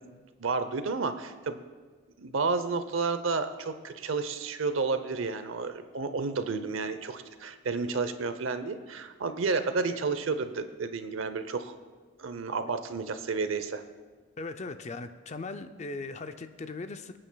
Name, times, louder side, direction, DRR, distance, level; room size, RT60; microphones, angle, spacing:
voice 1, 0.1-1.6 2.2-11.7 12.2-13.8, right 4 dB, 75° right, 10 dB, 0.7 m, -31 dB
voice 2, 14.4-17.1, left 3 dB, 35° left, 9 dB, 0.4 m, -38 dB
26.0 x 8.8 x 2.3 m, 1.4 s
head